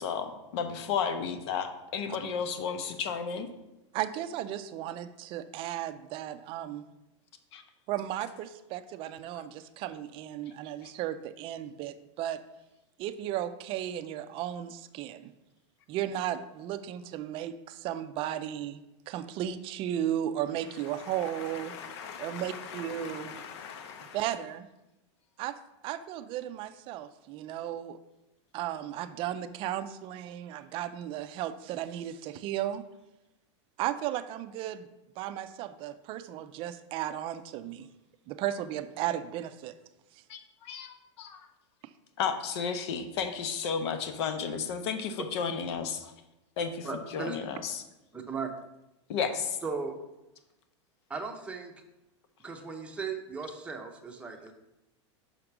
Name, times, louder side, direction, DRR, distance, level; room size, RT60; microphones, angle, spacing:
voice 1, 0.0-3.5 7.5-7.6 10.8-10.9 21.0-24.2 40.3-41.4 42.2-46.1 46.6-46.9 47.1-47.8 49.1-49.6, left 6 dB, 60° left, 8 dB, 1.0 m, -34 dB
voice 2, 3.9-6.8 7.9-12.4 13.0-15.3 15.9-18.8 19.1-21.8 22.2-23.4 24.1-24.7 25.4-25.6 25.8-28.0 28.5-32.8 33.8-34.9 35.2-37.9 38.3-39.7 40.1-40.2 47.2-47.3, right 11 dB, 35° right, 11 dB, 0.5 m, -35 dB
voice 3, 46.8-47.4 48.1-48.5 49.6-50.0 51.1-51.7 52.4-54.5, right 5 dB, 5° right, 1 dB, 0.8 m, -37 dB
5.8 x 5.1 x 6.0 m, 0.95 s
supercardioid pair, 145°, 16 cm